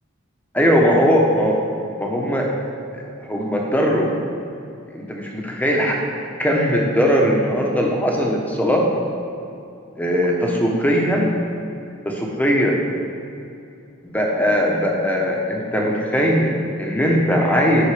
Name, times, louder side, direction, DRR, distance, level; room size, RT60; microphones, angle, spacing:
voice 1, 0.5-1.6 2.0-2.5 2.9-4.1 4.9-6.0 6.4-8.8 10.0-11.3 12.0-12.8 14.0-17.9, equal, 10° left, -1 dB, 1.1 m, -19 dB
9.7 x 6.4 x 5.0 m, 2.6 s
head